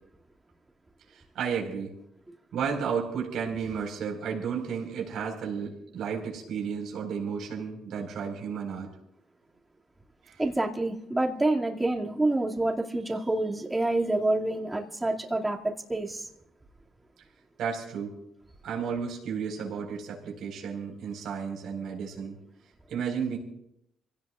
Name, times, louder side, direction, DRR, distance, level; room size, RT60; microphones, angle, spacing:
voice 1, 1.1-1.9 2.5-8.9 10.2-10.4 17.6-18.2 18.6-22.4 22.9-23.4, right 6 dB, 75° right, 0 dB, 4.7 m, -33 dB
voice 2, 10.4-16.3, right 2 dB, 15° right, 0 dB, 2.4 m, -27 dB
27.0 x 17.0 x 2.5 m, 0.80 s
cardioid pair, 90°, 0 cm